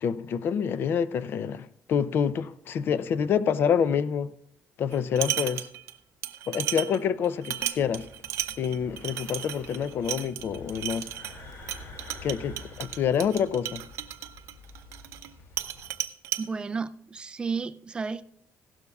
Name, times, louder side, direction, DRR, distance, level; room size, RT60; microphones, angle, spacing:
voice 1, 0.0-4.3 4.8-5.7 6.5-8.1 8.6-11.1 12.2-13.8, left 7 dB, 50° left, 0.5 m, -27 dB
sound 1, 4.9-5.9 6.2-15.3 15.6-16.4, right 12 dB, 70° right, 0.6 m, -34 dB
sound 2, 7.8-15.9, left 2 dB, 65° left, 2.4 m, -48 dB
voice 2, 16.4-18.3, right 5 dB, 20° right, 0.3 m, -32 dB
16.0 x 12.0 x 2.3 m
cardioid pair, 140°, 5 cm